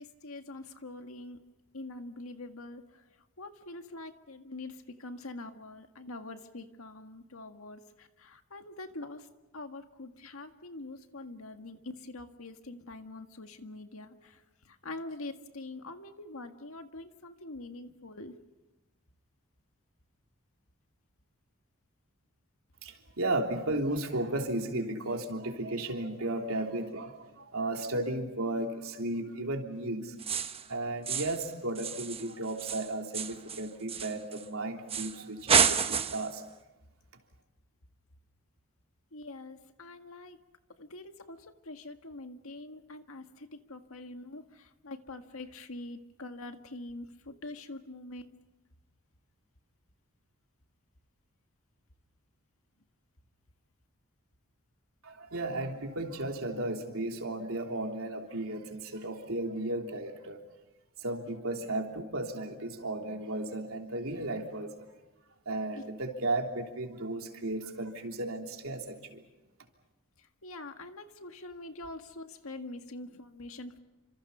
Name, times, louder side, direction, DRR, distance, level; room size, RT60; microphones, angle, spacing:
voice 1, 0.0-1.4 1.7-3.0 3.4-9.3 9.5-18.3 39.1-40.4 40.8-48.3 65.7-65.8 70.2-73.8, left 2 dB, 80° left, 7 dB, 1.8 m, -44 dB
voice 2, 22.8-30.2 30.7-36.4 55.0-60.4 61.0-64.9 65.4-69.2, right 2 dB, 75° right, 2 dB, 3.3 m, -34 dB
sound 1, 30.2-30.7 31.1-31.5 31.8-34.5 34.9-35.2 35.5-36.3, right 6 dB, 30° right, 1.1 m, -29 dB
29.5 x 26.0 x 5.6 m, 1.1 s
head